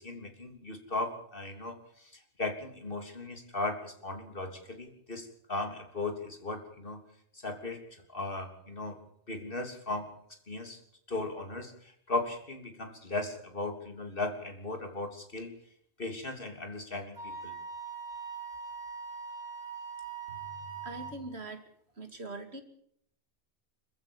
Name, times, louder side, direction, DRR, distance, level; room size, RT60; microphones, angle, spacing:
voice 1, 0.0-7.0 7.3-9.0 9.3-10.1 10.5-10.8 11.1-15.5 16.0-17.5, left 2 dB, 50° left, 5 dB, 3.5 m, -37 dB
Wind instrument woodwind instrument, 17.2-21.1, right 6 dB, 85° right, 4.9 m, -41 dB
voice 2, 20.3-21.6 22.0-22.6, right 2 dB, 65° right, 6 dB, 2.9 m, -43 dB
27.0 x 15.0 x 7.2 m, 0.69 s
omnidirectional pair, 1.1 m